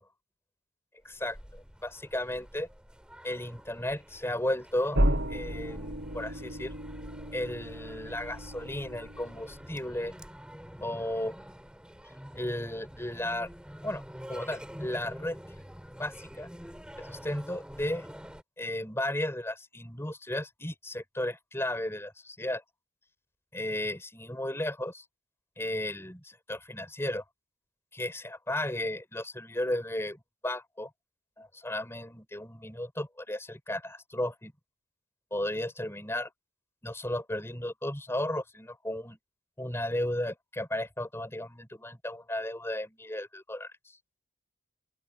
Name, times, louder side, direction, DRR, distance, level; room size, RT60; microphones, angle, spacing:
voice 1, 1.0-2.7 3.2-5.0 5.3-6.7 7.3-10.1 10.8-11.3 12.3-13.5 13.8-14.0 14.3-15.4 16.0-16.5 17.0-18.1 18.6-22.6 23.5-25.0 25.6-27.2 27.9-30.9 31.4-34.5 35.3-36.3 36.8-39.2 39.6-44.0, left 1 dB, 10° left, 4.9 m, -34 dB
sound 1, 1.1-18.4, equal, 5° right, 4.0 m, -47 dB
sound 2, 4.9-9.6, equal, 55° right, 6.4 m, -32 dB
open air
head